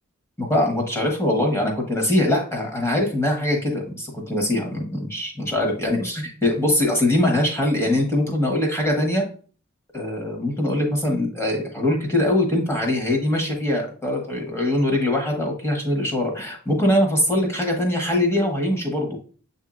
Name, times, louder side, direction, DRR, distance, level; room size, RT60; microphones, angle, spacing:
voice 1, 0.4-9.2 9.9-19.2, left 1 dB, 15° left, 0 dB, 1.2 m, -22 dB
7.4 x 2.7 x 2.4 m, 0.42 s
head